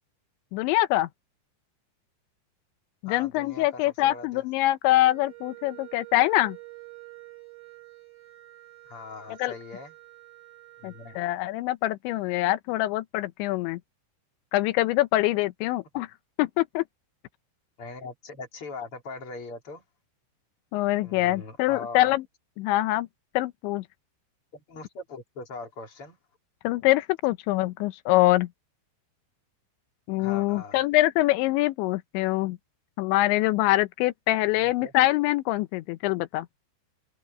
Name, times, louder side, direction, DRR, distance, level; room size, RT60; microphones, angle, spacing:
voice 1, 0.5-1.1 3.0-6.6 9.4-9.5 10.8-13.8 14.5-16.1 16.4-16.8 20.7-22.2 22.6-23.1 23.4-23.8 26.6-28.5 30.1-32.6 33.0-36.5, left 17 dB, 90° left, 3.1 m, -24 dB
voice 2, 3.0-4.4 8.9-9.9 10.8-11.2 17.8-19.8 21.0-22.2 24.5-26.2 30.2-30.8 34.6-34.9, left 3 dB, 35° left, 3.5 m, -41 dB
Wind instrument woodwind instrument, 4.9-11.3, right 21 dB, 45° right, 5.0 m, -48 dB
omnidirectional pair, 5.1 m